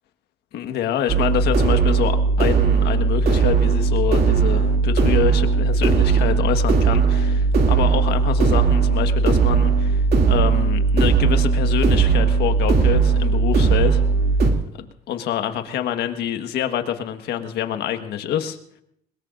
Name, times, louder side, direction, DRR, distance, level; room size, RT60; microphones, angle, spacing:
voice 1, 0.5-14.0 14.8-18.6, left 10 dB, 75° left, 7 dB, 1.5 m, -26 dB
sound 1, 1.1-14.5, right 5 dB, 65° right, 2.6 m, -18 dB
22.0 x 21.0 x 2.6 m, 0.70 s
cardioid pair, 110°, 17 cm